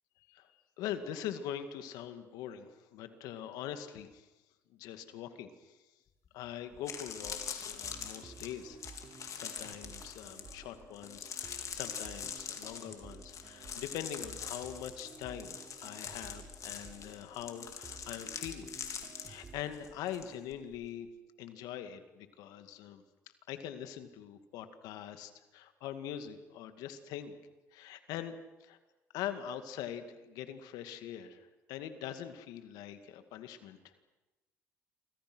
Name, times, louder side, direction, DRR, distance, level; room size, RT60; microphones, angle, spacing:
voice 1, 0.3-4.3 4.7-5.8 6.3-8.8 9.3-18.7 19.2-21.1 21.4-23.0 23.5-27.4 27.7-28.3 28.6-28.8 29.1-33.9, left 10 dB, 80° left, 9 dB, 2.2 m, -43 dB
sound 1, 6.2-6.3 6.7-20.3 20.5-20.9, left 7 dB, 55° left, 3.7 m, -43 dB
sound 2, 7.1-19.6, right 4 dB, 40° right, 3.6 m, -53 dB
28.0 x 25.0 x 6.3 m, 1.1 s
supercardioid pair, 70°, 7 cm